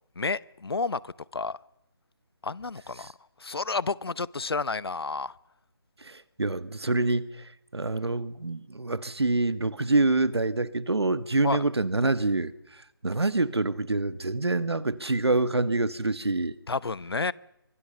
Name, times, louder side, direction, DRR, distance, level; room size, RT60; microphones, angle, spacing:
voice 1, 0.2-1.6 2.4-3.1 3.4-5.3 11.4-11.6 16.7-17.3, left 4 dB, 70° left, 21 dB, 0.9 m, -30 dB
voice 2, 6.0-16.5, right 2 dB, 80° right, 14 dB, 1.7 m, -26 dB
24.5 x 23.0 x 6.9 m, 0.85 s
figure-of-eight pair, 160°, 13 cm